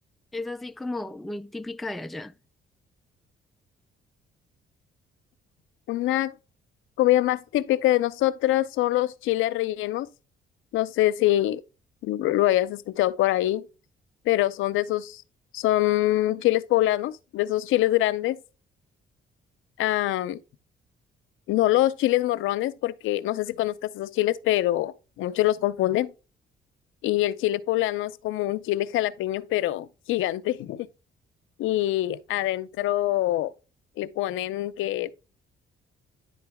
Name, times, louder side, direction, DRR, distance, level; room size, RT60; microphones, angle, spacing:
voice 1, 0.3-2.3, left 2 dB, ahead, 0.3 m, -34 dB
voice 2, 5.9-6.3 7.0-10.1 10.7-11.6 12.0-13.6 14.3-15.2 15.5-18.4 19.8-20.4 21.5-26.1 27.0-30.9 31.6-33.5 34.0-35.2, left 15 dB, 85° left, 0.6 m, -24 dB
10.5 x 3.9 x 3.4 m
cardioid pair, 90°, 20 cm